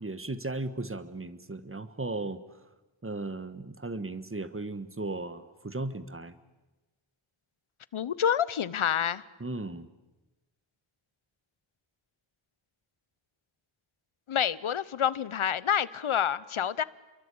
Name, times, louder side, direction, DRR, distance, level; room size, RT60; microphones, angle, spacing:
voice 1, 0.0-2.4 3.0-6.3 9.4-9.9, right 2 dB, 25° right, 13 dB, 1.6 m, -36 dB
voice 2, 7.9-9.2 14.3-16.8, left 9 dB, 85° left, 18 dB, 1.0 m, -28 dB
29.0 x 23.0 x 8.6 m, 1.1 s
wide cardioid pair, 80°, 48 cm